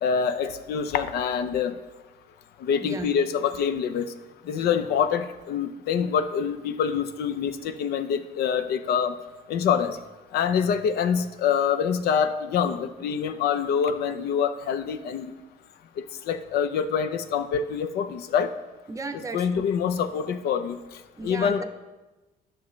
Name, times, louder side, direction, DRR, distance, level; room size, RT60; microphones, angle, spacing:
voice 1, 0.0-1.8 2.6-4.1 4.5-9.2 9.5-10.0 10.3-15.3 16.3-18.5 19.3-20.8 21.2-21.6, left 7 dB, 70° left, 9 dB, 0.6 m, -25 dB
voice 2, 2.8-3.2 18.9-19.6 21.2-21.6, right 3 dB, 20° right, 7 dB, 0.6 m, -35 dB
11.0 x 6.1 x 3.1 m, 1.1 s
cardioid pair, 110°, 17 cm